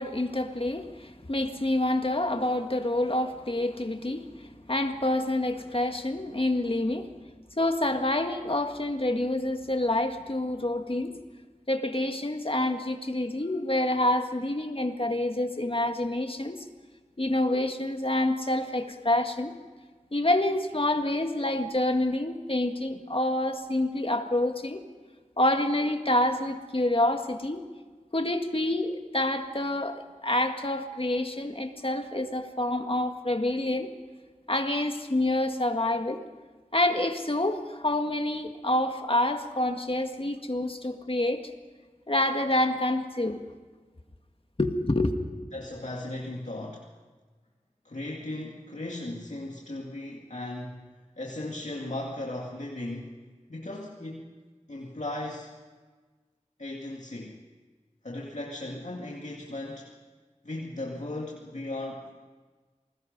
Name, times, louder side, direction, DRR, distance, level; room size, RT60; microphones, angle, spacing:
voice 1, 0.0-4.3 4.7-7.1 7.6-11.2 11.7-16.6 17.2-19.5 20.1-24.8 25.4-27.6 28.1-33.9 34.5-36.2 36.7-41.5 42.1-43.4 44.6-45.2, left 1 dB, 45° left, 6 dB, 1.8 m, -27 dB
voice 2, 45.5-46.9 47.8-50.9 51.2-53.2 53.5-54.4 54.7-55.6 56.6-57.4 58.0-59.9 60.4-62.1, left 1 dB, 70° left, -2 dB, 2.2 m, -37 dB
28.0 x 20.0 x 5.3 m, 1.4 s
wide cardioid pair, 45°, 13 cm